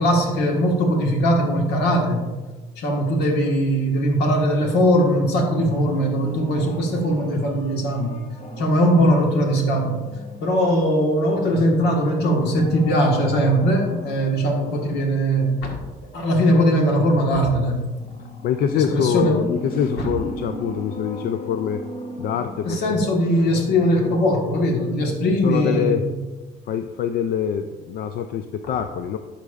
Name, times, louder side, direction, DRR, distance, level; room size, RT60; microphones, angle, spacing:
voice 1, 0.0-2.3 2.8-8.2 8.6-10.0 10.4-15.8 16.0-17.9 18.7-19.4 20.0-20.1 22.6-26.0, equal, 80° left, 1 dB, 1.5 m, -20 dB
sound 1, 5.4-11.1 12.2-15.2 18.0-23.2 23.5-23.6, equal, 40° left, 1.0 m, -37 dB
voice 2, 18.4-21.8 22.2-23.0 25.4-26.0 26.7-29.2, left 8 dB, 65° left, 8 dB, 0.4 m, -24 dB
11.5 x 5.2 x 2.4 m, 1.2 s
cardioid pair, 110°, 17 cm